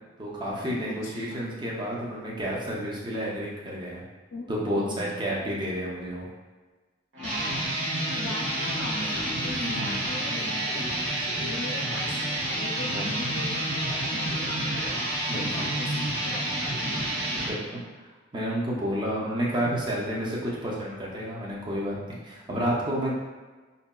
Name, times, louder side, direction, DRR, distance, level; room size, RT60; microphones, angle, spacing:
voice 1, 0.2-4.0 4.5-6.3 9.6-10.0 12.8-13.1 15.3-15.7 17.3-17.8 18.3-23.1, equal, 25° right, -4 dB, 0.5 m, -30 dB
voice 2, 0.9-1.4 4.3-5.1 7.2-7.8 8.2-15.0 15.4-17.3, left 2 dB, 80° left, -3 dB, 0.5 m, -39 dB
sound 1, 7.1-17.5, right 1 dB, 90° right, 1.1 m, -29 dB
3.8 x 2.1 x 2.2 m, 1.3 s
head